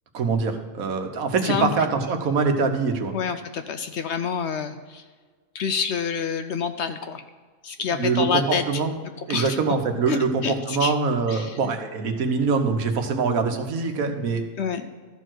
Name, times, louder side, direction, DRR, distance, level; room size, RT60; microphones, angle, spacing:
voice 1, 0.1-3.1 7.9-8.9 9.3-14.4, right 4 dB, 80° right, 5 dB, 1.4 m, -24 dB
voice 2, 3.1-5.0 5.5-7.2 7.6-8.8 9.3-9.6 10.1-10.9 11.3-11.7 14.6-14.9, left 6 dB, 65° left, 9 dB, 0.7 m, -27 dB
13.5 x 4.6 x 6.1 m, 1.5 s
omnidirectional pair, 1.5 m